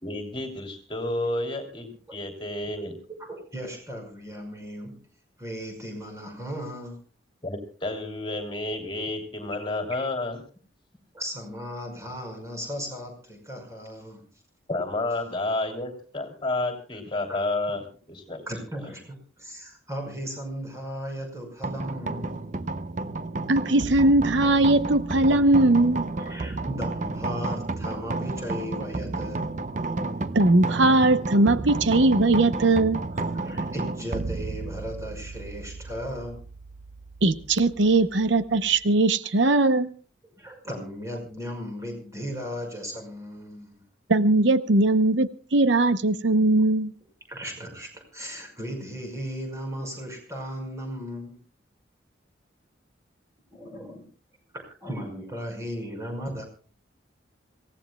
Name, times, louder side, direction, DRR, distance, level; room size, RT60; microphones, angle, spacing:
voice 1, 0.0-3.0 7.4-10.4 14.7-18.4, left 2 dB, 25° left, 3.1 m, -30 dB
voice 2, 3.2-5.0 5.4-7.0 9.9-10.1 11.1-14.2 17.3-17.4 18.2-22.4 26.1-29.5 33.1-36.4 40.4-43.8 47.3-51.4 53.6-54.0 54.8-56.5, equal, 15° right, 5.5 m, -36 dB
sound 1, 21.6-38.8, right 3 dB, 40° right, 0.6 m, -32 dB
voice 3, 23.5-26.1 30.3-33.0 37.2-39.9 44.1-46.9, right 2 dB, 80° right, 0.8 m, -20 dB
26.5 x 17.0 x 2.3 m
head